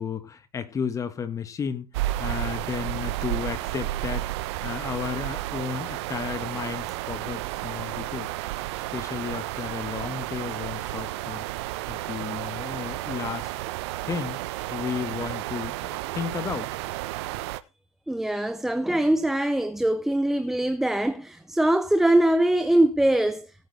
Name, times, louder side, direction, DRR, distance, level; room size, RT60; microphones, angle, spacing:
voice 1, 0.0-1.9 2.2-4.3 4.6-8.3 8.9-11.4 11.9-13.5 14.0-14.4 14.7-16.7, left 7 dB, 15° left, 1.6 m, -33 dB
sound 1, 1.9-17.6, right 16 dB, 45° right, 1.1 m, -32 dB
voice 2, 18.1-23.5, right 1 dB, ahead, 0.6 m, -22 dB
18.0 x 9.1 x 3.5 m
hypercardioid pair, 115°, 20 cm